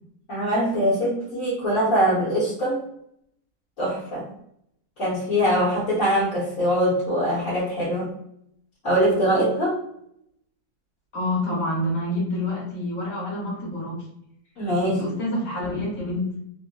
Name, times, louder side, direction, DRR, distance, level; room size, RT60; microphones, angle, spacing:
voice 1, 0.3-2.8 3.8-4.3 5.0-8.1 8.8-9.8 14.6-15.0, equal, 60° left, -10 dB, 1.4 m, -23 dB
voice 2, 11.1-14.0 14.8-16.3, left 1 dB, 45° left, -5 dB, 1.5 m, -27 dB
3.2 x 2.5 x 2.2 m, 0.74 s
omnidirectional pair, 1.7 m